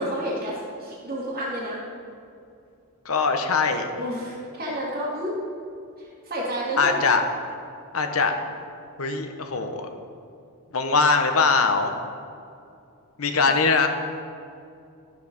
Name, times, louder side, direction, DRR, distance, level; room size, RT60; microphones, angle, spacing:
voice 1, 0.0-1.8 4.0-5.3 6.0-6.9, right 1 dB, 40° right, -9 dB, 1.8 m, -30 dB
voice 2, 3.0-3.9 6.8-7.2 7.9-8.3 9.0-9.9 10.7-11.9 13.2-13.9, left 4 dB, 70° left, 6 dB, 1.0 m, -21 dB
11.0 x 7.6 x 5.2 m, 2.5 s
head